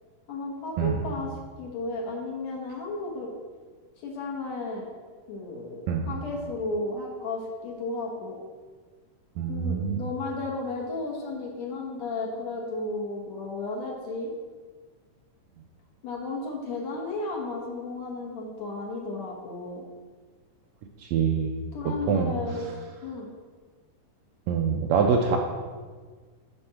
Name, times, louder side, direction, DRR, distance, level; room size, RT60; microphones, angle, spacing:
voice 1, 0.3-1.3 1.6-3.3 4.0-4.9 5.3-8.4 9.5-14.3 16.0-19.8 21.7-22.7 23.0-23.3, left 3 dB, 60° left, -2 dB, 2.4 m, -33 dB
voice 2, 9.4-10.0 21.1-21.5 21.9-22.4 24.5-25.4, right 6 dB, 80° right, 3 dB, 1.7 m, -25 dB
9.8 x 4.4 x 5.9 m, 1.5 s
omnidirectional pair, 3.6 m